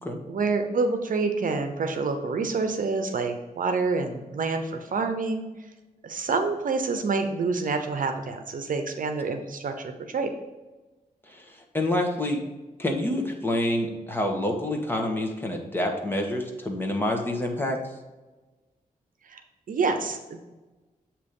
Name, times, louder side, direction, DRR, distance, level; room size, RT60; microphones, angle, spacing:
voice 1, 0.3-5.4 6.0-9.7 10.1-10.3 19.3-19.4 19.7-20.4, right 4 dB, 70° right, 6 dB, 0.8 m, -27 dB
voice 2, 11.3-12.4 12.8-17.8, left 1 dB, 15° left, 1 dB, 1.4 m, -27 dB
8.2 x 3.1 x 5.3 m, 1.2 s
cardioid pair, 80°, 15 cm